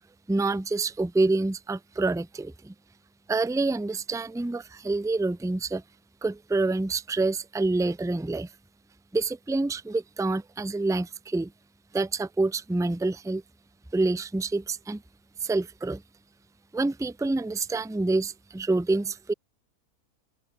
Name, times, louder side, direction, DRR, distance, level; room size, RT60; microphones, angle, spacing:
voice 1, 0.3-2.7 3.3-5.8 6.2-8.5 9.1-11.5 11.9-13.4 13.9-15.0 15.4-16.0 16.7-19.3, right 3 dB, 5° right, 0.6 m, -27 dB
open air
omnidirectional pair, 1.6 m